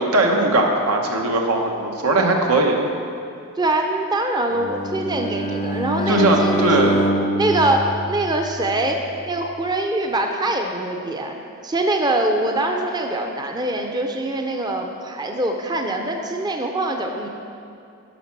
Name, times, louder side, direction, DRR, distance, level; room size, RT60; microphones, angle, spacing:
voice 1, 0.0-2.7 6.1-7.0, right 2 dB, 90° right, 1 dB, 1.3 m, -19 dB
voice 2, 3.6-6.6 7.4-11.3 11.6-17.3, right 1 dB, 20° right, 3 dB, 0.5 m, -23 dB
Bowed string instrument, 4.6-8.7, equal, 30° left, 0.6 m, -24 dB
11.0 x 5.7 x 6.1 m, 2.5 s
head